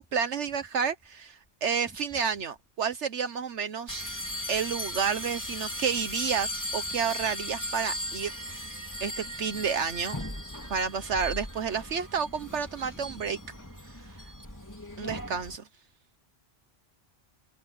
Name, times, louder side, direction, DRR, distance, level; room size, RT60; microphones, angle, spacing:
voice 1, 0.0-4.0 4.5-8.7 9.0-10.2 10.7-13.4 15.0-15.6, right 6 dB, 70° right, 1.2 m, -30 dB
sound 1, 3.9-15.6, equal, 15° left, 3.3 m, -37 dB
voice 2, 12.4-13.5, right 1 dB, 10° right, 3.6 m, -51 dB
omnidirectional pair, 1.2 m